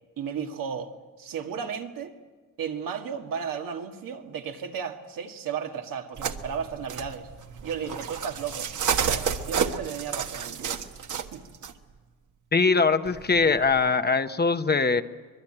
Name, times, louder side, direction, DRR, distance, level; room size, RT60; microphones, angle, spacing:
voice 1, 0.2-0.9 1.2-2.1 2.6-7.3 7.6-10.8 11.1-11.4, right 7 dB, 80° right, 1.9 m, -34 dB
sound 1, 6.1-11.7 13.1-13.9, right 7 dB, 60° right, 1.4 m, -31 dB
voice 2, 12.5-15.0, left 4 dB, 30° left, 0.9 m, -22 dB
24.0 x 21.5 x 8.8 m
cardioid pair, 110°, 33 cm